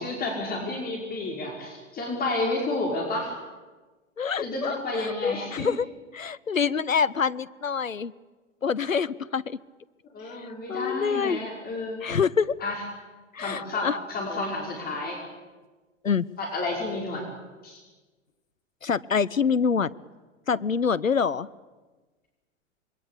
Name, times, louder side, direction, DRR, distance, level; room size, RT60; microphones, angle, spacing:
voice 1, 0.0-3.3 4.4-5.7 10.1-12.0 12.6-12.8 13.4-15.2 16.4-17.2 17.6-17.8, left 2 dB, 25° left, -1 dB, 5.6 m, -31 dB
voice 2, 4.2-5.9 6.1-8.1 8.6-9.6 10.3-11.4 12.0-12.5 13.3-14.0 14.3-14.4 16.0-16.3 18.8-19.9 20.5-21.5, left 6 dB, 85° left, 18 dB, 0.8 m, -26 dB
26.5 x 22.0 x 8.5 m, 1.3 s
figure-of-eight pair, 100°, 38 cm